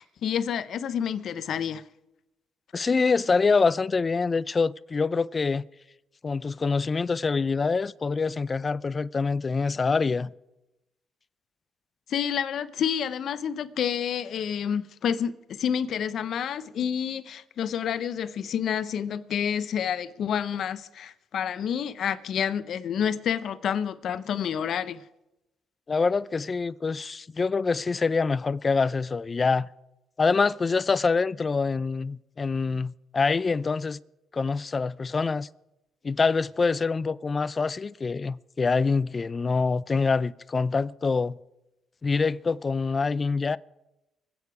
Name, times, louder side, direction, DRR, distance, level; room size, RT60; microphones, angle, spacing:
voice 1, 0.0-1.8 12.1-25.0, left 8 dB, 65° left, 0.7 m, -29 dB
voice 2, 2.7-5.6 6.2-10.3 25.9-29.7 30.2-34.0 34.3-35.5 36.0-41.4 42.0-43.6, left 4 dB, 35° left, 0.4 m, -25 dB
25.0 x 8.7 x 4.8 m
cardioid pair, 90°, 0 cm